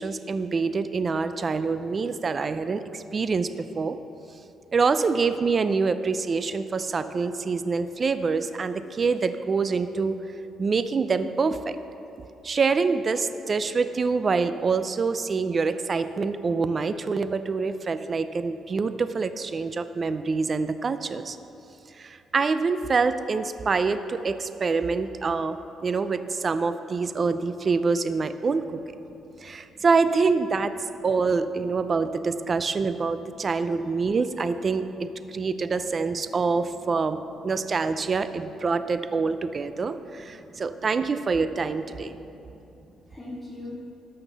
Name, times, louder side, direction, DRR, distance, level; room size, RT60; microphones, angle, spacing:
voice 1, 0.0-4.0 4.7-10.2 10.6-11.8 12.4-21.4 22.0-28.8 29.4-30.7 31.0-42.1, right 4 dB, 40° right, 11 dB, 0.5 m, -26 dB
voice 2, 40.2-40.8 42.1-42.8 43.1-43.8, left 2 dB, 20° left, -10 dB, 3.1 m, -43 dB
13.0 x 5.9 x 6.8 m, 2.8 s
cardioid pair, 90°, 0 cm